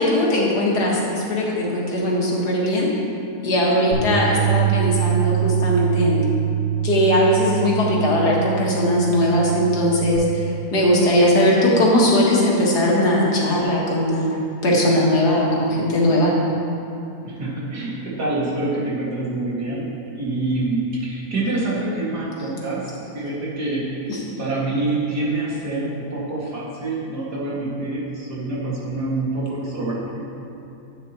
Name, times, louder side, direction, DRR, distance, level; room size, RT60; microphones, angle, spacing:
voice 1, 0.0-2.9 3.4-6.2 6.8-14.3 14.6-16.3 24.1-24.2, left 1 dB, 85° left, -4 dB, 2.2 m, -19 dB
Bass guitar, 3.9-10.2, right 9 dB, 60° right, 3.0 m, -24 dB
voice 2, 17.2-24.1 24.4-30.2, right 2 dB, 90° right, -6 dB, 2.7 m, -26 dB
12.0 x 8.7 x 3.0 m, 2.8 s
omnidirectional pair, 1.7 m